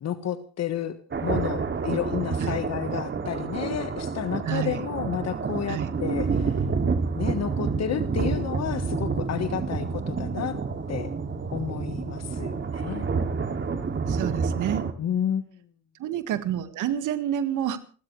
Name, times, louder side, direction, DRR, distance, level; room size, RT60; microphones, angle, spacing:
voice 1, 0.0-1.0 1.2-6.6 7.2-10.6 10.9-11.1 11.5-13.1 15.0-15.6, left 9 dB, 60° left, 10 dB, 1.5 m, -31 dB
sound 1, 1.1-14.9, right 5 dB, 40° right, 2.6 m, -29 dB
voice 2, 4.4-4.9 5.7-5.9 14.1-14.9 16.0-17.8, right 10 dB, 85° right, 10 dB, 1.9 m, -29 dB
29.5 x 13.0 x 3.3 m, 0.40 s
cardioid pair, 90°, 30 cm